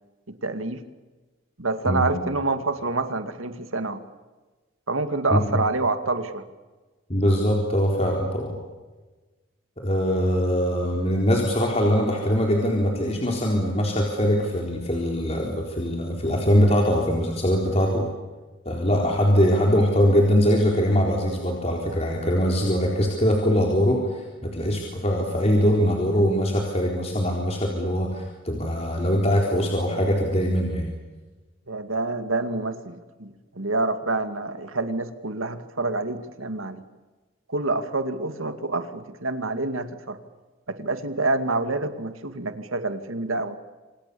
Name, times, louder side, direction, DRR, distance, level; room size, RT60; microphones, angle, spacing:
voice 1, 0.3-0.8 1.6-4.0 4.9-6.4 31.7-36.8 37.5-40.2 40.7-43.6, right 3 dB, 90° right, 9 dB, 2.3 m, -27 dB
voice 2, 7.1-8.5 9.8-18.1 18.6-30.9, equal, 30° left, 0 dB, 4.1 m, -22 dB
28.5 x 27.0 x 7.1 m, 1.2 s
head